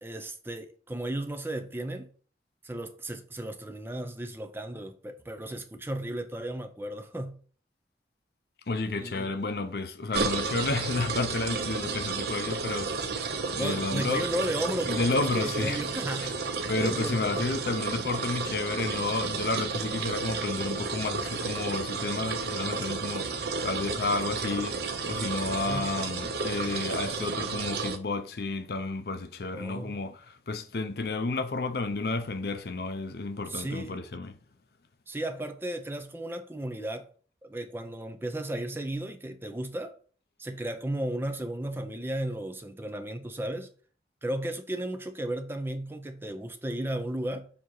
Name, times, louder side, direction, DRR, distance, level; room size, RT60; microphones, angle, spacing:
voice 1, 0.0-2.1 2.6-7.4 8.9-9.3 13.6-17.7 25.5-26.0 29.5-30.0 33.5-34.0 35.1-37.1 37.4-39.9 40.4-43.7 44.2-47.5, right 1 dB, 15° right, 0.5 m, -35 dB
voice 2, 8.7-14.2 14.9-15.8 16.2-16.3 16.7-34.4, left 3 dB, 60° left, 0.6 m, -31 dB
sound 1, 10.1-28.0, right 4 dB, 65° right, 0.7 m, -32 dB
6.9 x 2.9 x 4.7 m
head